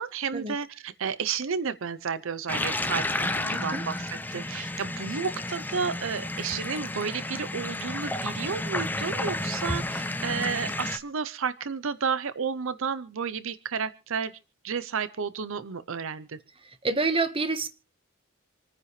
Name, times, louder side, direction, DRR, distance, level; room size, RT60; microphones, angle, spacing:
voice 1, 0.0-14.4 14.6-16.4, right 6 dB, 70° right, 0.6 m, -32 dB
sound 1, 2.5-11.0, left 2 dB, 10° left, 0.8 m, -31 dB
voice 2, 3.5-3.8 16.8-17.7, right 3 dB, 25° right, 1.2 m, -27 dB
27.0 x 9.8 x 3.2 m
head